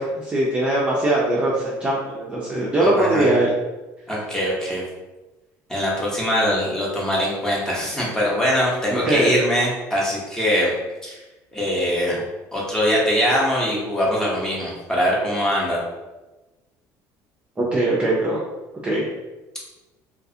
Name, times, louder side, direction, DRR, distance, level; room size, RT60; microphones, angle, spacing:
voice 1, 0.0-3.5 8.9-9.3 17.6-18.4 18.8-19.0, right 1 dB, 15° right, -5 dB, 0.5 m, -21 dB
voice 2, 2.8-3.3 4.1-4.8 5.7-10.7 11.0-11.1 11.5-12.2 12.5-15.8, equal, 10° left, -5 dB, 0.8 m, -22 dB
2.4 x 2.3 x 2.6 m, 1.1 s
cardioid pair, 120°, 7 cm